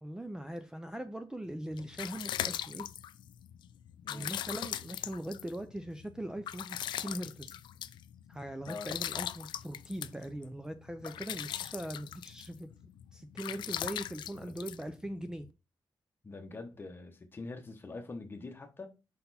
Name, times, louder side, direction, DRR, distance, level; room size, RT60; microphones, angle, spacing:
voice 1, 0.0-2.9 4.1-7.6 8.3-12.7 13.1-15.5, right 1 dB, 10° right, 0.4 m, -41 dB
sound 1, 1.5-15.5, left 11 dB, 85° left, 0.3 m, -41 dB
voice 2, 16.2-18.9, left 3 dB, 30° left, 1.0 m, -44 dB
5.5 x 4.2 x 4.1 m
wide cardioid pair, 130°, 8 cm